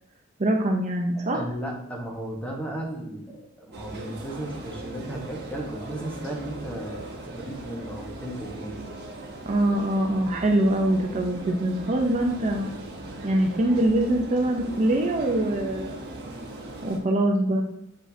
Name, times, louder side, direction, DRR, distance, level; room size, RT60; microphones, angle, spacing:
voice 1, 0.4-1.4 9.5-12.7 13.2-16.0 16.8-17.6, right 1 dB, 35° right, 2 dB, 0.6 m, -23 dB
voice 2, 1.2-8.9, right 1 dB, 5° left, -1 dB, 1.3 m, -35 dB
sound 1, 3.7-17.0, right 2 dB, 55° right, 1.1 m, -39 dB
7.3 x 5.3 x 2.7 m, 0.80 s
head